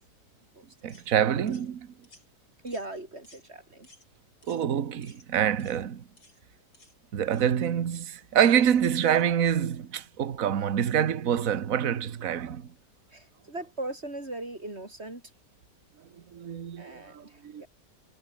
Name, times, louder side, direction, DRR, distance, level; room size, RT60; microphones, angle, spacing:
voice 1, 0.8-1.9 4.5-6.1 7.1-12.7 16.3-17.6, right 9 dB, 55° right, 1.6 m, -26 dB
sound 1, 0.9-1.1 1.5-1.7 2.0-2.3 2.7-2.9 3.2-3.5 3.8-4.1 4.4-4.7 5.0-5.3 5.6-5.8 6.2-6.4 6.7-7.0 7.3-7.5 7.9-8.1 8.5-8.7 9.0-9.2, left 2 dB, 80° left, 8.2 m, -57 dB
voice 2, 2.6-3.9 13.1-15.2 16.8-17.7, right 2 dB, 35° right, 6.9 m, -39 dB
omnidirectional pair, 1.9 m